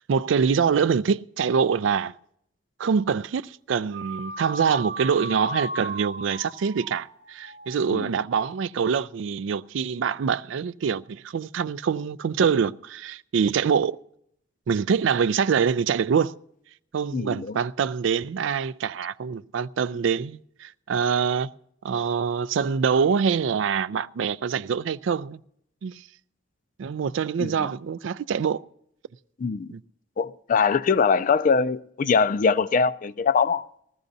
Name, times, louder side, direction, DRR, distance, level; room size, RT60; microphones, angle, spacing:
voice 1, 0.1-2.1 2.8-14.0 14.7-16.3 16.9-21.5 21.8-25.4 25.8-26.0 26.8-28.6 29.7-29.8, right 6 dB, 75° right, 0.4 m, -25 dB
sound 1, 3.9-8.4, right 2 dB, 40° right, 0.9 m, -37 dB
voice 2, 17.1-17.6 27.4-27.7 29.4-29.7 30.2-33.6, left 5 dB, 45° left, 0.4 m, -22 dB
20.5 x 14.5 x 2.6 m
head